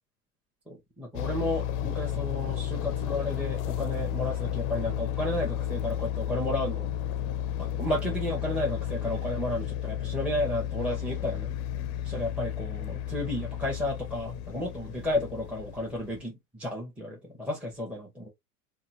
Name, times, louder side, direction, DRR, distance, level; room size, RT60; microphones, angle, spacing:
voice 1, 0.7-6.9 7.6-11.5 12.0-18.3, left 1 dB, 5° right, 1.0 m, -32 dB
sound 1, 1.1-16.2, left 10 dB, 45° left, 0.5 m, -33 dB
2.8 x 2.3 x 2.8 m
hypercardioid pair, 100°, 43 cm